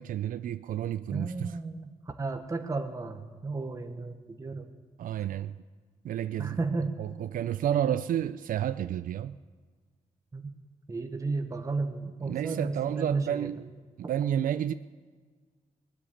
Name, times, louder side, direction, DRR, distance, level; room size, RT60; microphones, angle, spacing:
voice 1, 0.0-1.6 5.0-5.5 6.0-6.6 7.0-9.4 12.2-13.6 14.1-14.7, right 10 dB, 85° right, 0.4 m, -30 dB
voice 2, 1.1-1.9 2.2-4.7 6.4-7.0 10.3-10.5 10.9-13.5, right 3 dB, 25° right, 1.0 m, -33 dB
20.0 x 7.3 x 10.0 m
wide cardioid pair, 135°, 14 cm